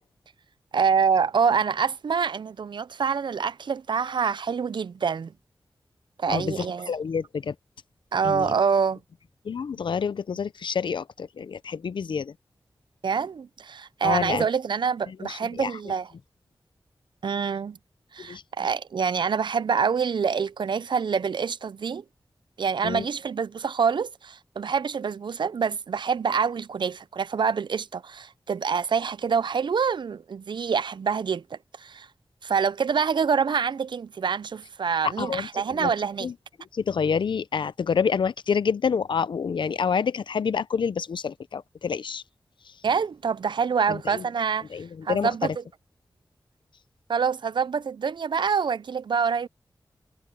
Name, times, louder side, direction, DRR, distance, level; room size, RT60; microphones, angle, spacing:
voice 1, 0.7-5.3 6.2-6.9 8.1-9.0 13.0-16.1 17.2-17.8 18.1-22.0 22.6-32.1 32.4-36.3 42.8-44.7 45.0-45.6 47.1-49.5, right 6 dB, 75° right, 0.5 m, -26 dB
voice 2, 6.3-7.5 8.2-8.5 9.4-12.3 14.0-14.5 15.1-15.7 18.2-18.4 22.8-23.1 35.0-35.9 36.2-36.3 36.7-42.2 43.9-44.2 44.7-45.6, left 6 dB, 80° left, 0.7 m, -28 dB
cardioid pair, 45°, 8 cm